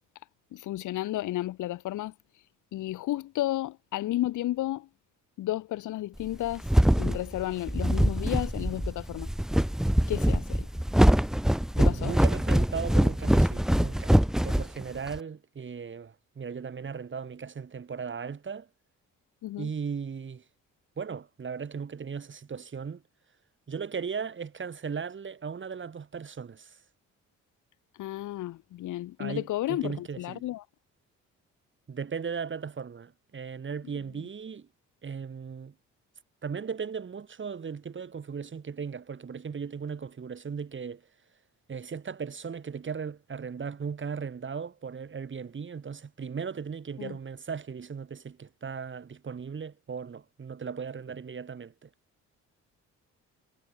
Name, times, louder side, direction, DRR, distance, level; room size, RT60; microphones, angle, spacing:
voice 1, 0.5-2.4 2.7-4.9 5.4-6.7 7.0-9.3 10.1-10.7 11.8-12.2 19.4-19.7 28.0-30.7 34.2-34.3 47.0-47.2, left 15 dB, 85° left, 2.1 m, -32 dB
sound 1, 6.3-15.2, equal, ahead, 0.7 m, -23 dB
voice 2, 11.8-14.2 14.4-18.7 19.6-20.4 21.0-23.0 23.7-26.8 29.2-30.4 31.9-34.7 35.0-35.7 36.4-41.0 41.7-51.9, right 6 dB, 40° right, 4.1 m, -37 dB
cardioid pair, 90°, 30 cm